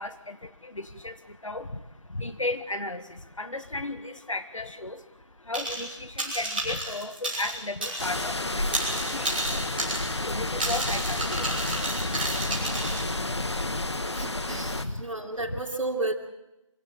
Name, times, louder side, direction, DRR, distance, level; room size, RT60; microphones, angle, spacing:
voice 1, 0.0-14.2 14.7-15.3, left 2 dB, 75° left, 10 dB, 1.8 m, -36 dB
sound 1, 5.5-5.9 6.2-8.3 8.6-13.0, right 1 dB, 20° right, 6.0 m, -31 dB
sound 2, 8.0-14.8, left 2 dB, 55° left, 1.5 m, -30 dB
voice 2, 14.1-16.1, right 2 dB, 75° right, -2 dB, 3.1 m, -32 dB
26.0 x 17.0 x 8.6 m, 0.95 s
figure-of-eight pair, 175°, 17 cm